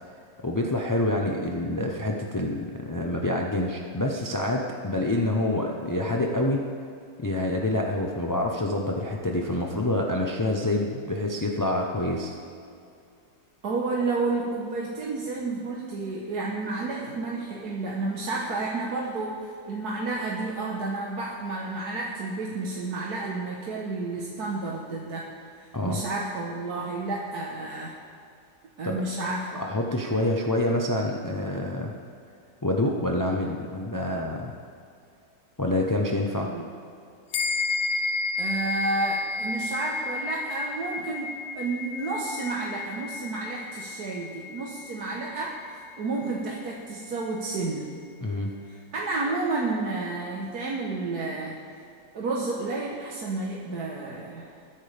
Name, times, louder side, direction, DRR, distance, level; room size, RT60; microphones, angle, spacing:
voice 1, 0.4-6.7 7.2-12.4 25.7-26.0 28.8-29.0 29.6-31.9 32.6-34.5 35.6-36.5 48.2-48.5, left 1 dB, 25° left, 0 dB, 0.4 m, -27 dB
voice 2, 13.6-25.3 25.6-27.9 28.8-29.6 36.4-36.6 38.4-47.9 48.9-51.8 52.1-54.5, right 3 dB, 65° right, -3 dB, 1.7 m, -31 dB
sound 1, 37.3-47.1, left 3 dB, 75° left, 1.2 m, -33 dB
21.0 x 10.5 x 3.5 m, 2.5 s
omnidirectional pair, 1.9 m